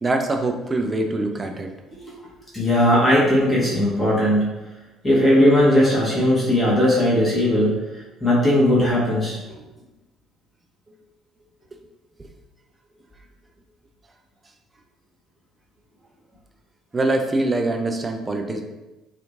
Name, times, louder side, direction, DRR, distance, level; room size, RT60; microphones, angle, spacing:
voice 1, 0.0-1.7 10.9-11.0 12.2-12.3 16.9-18.6, right 2 dB, 25° right, 4 dB, 0.4 m, -24 dB
voice 2, 2.5-4.6 5.0-9.4, left 1 dB, 15° left, -8 dB, 1.0 m, -18 dB
2.8 x 2.5 x 2.4 m, 1.1 s
figure-of-eight pair, 50°, 0 cm